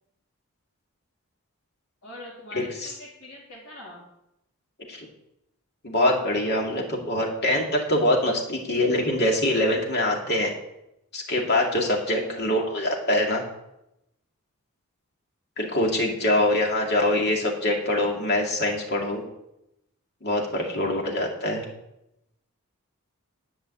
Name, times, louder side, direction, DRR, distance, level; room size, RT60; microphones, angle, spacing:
voice 1, 2.0-4.0 12.2-12.5 16.9-17.1 20.7-21.1, left 1 dB, 65° left, -8 dB, 3.4 m, -44 dB
voice 2, 2.5-2.9 4.9-5.1 5.8-10.5 11.1-13.4 15.6-19.2 20.2-21.6, left 1 dB, 50° left, 0 dB, 2.3 m, -24 dB
11.0 x 5.5 x 8.2 m, 0.85 s
head